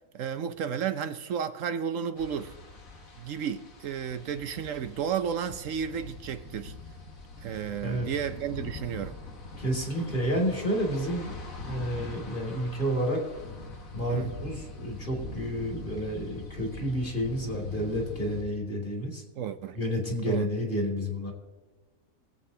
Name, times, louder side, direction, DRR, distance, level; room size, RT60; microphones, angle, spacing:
voice 1, 0.1-2.5 3.2-6.7 7.4-9.1 14.0-14.3 19.4-19.8 20.2-20.5, right 8 dB, 70° right, 1.0 m, -32 dB
sound 1, 2.2-18.4, left 2 dB, 75° left, 1.9 m, -43 dB
voice 2, 9.6-11.3 11.6-13.2 13.9-19.2 19.7-21.3, equal, 35° left, 2.6 m, -30 dB
22.5 x 8.0 x 2.8 m
omnidirectional pair, 1.4 m